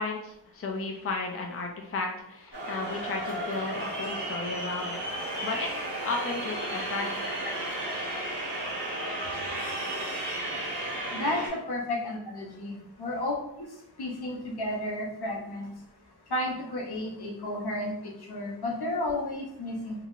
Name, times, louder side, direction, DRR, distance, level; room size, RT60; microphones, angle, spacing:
voice 1, 0.0-7.3, left 3 dB, 35° left, 1 dB, 0.5 m, -34 dB
sound 1, 2.5-11.5, right 1 dB, 80° right, 1.1 m, -33 dB
voice 2, 11.1-13.3 14.0-15.7 16.3-19.9, left 1 dB, 70° left, -1 dB, 0.8 m, -32 dB
2.9 x 2.7 x 2.5 m, 0.80 s
cardioid pair, 45°, 40 cm